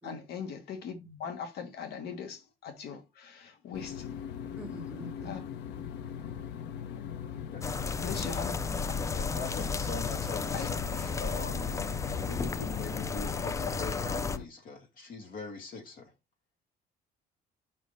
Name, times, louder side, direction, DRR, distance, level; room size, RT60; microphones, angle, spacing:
voice 1, 0.0-4.1 5.2-5.4 6.9-7.0 8.0-8.5 8.9-9.0 10.5-10.7, left 6 dB, 75° left, 1.5 m, -40 dB
sound 1, 3.7-14.5, left 8 dB, 90° left, 0.8 m, -40 dB
voice 2, 4.5-5.3 7.7-7.8 8.2-8.3, equal, 10° right, 1.8 m, -45 dB
sound 2, 7.6-14.4, left 4 dB, 20° left, 0.4 m, -33 dB
voice 3, 9.1-16.1, left 4 dB, 55° left, 2.5 m, -42 dB
5.5 x 3.2 x 5.3 m
cardioid pair, 110°, 17 cm